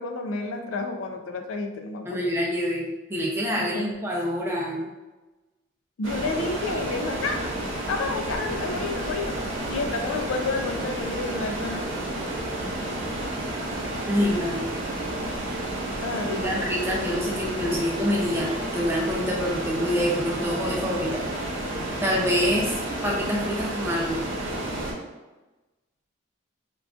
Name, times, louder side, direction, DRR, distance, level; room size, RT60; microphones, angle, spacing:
voice 1, 0.0-2.2 3.6-4.0 6.0-7.5 7.9-9.3 9.7-11.9 16.0-16.7, left 3 dB, 85° left, 5 dB, 0.4 m, -30 dB
voice 2, 2.0-4.9 14.1-14.7 16.3-21.2 22.0-24.2, equal, 10° right, -3 dB, 0.4 m, -26 dB
sound 1, 6.0-24.9, right 1 dB, 80° right, 0.8 m, -31 dB
3.7 x 2.3 x 2.3 m, 1.1 s
head